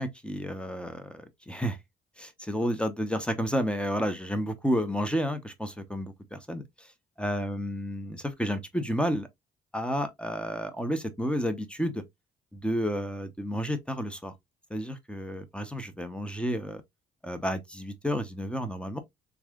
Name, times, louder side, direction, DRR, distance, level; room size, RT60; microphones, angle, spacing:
voice 1, 0.0-1.8 2.2-6.9 7.2-9.3 9.7-12.0 12.5-14.3 14.7-16.8 17.2-19.0, equal, 5° left, 0.7 m, -31 dB
3.6 x 3.2 x 2.3 m
cardioid pair, 90°, 20 cm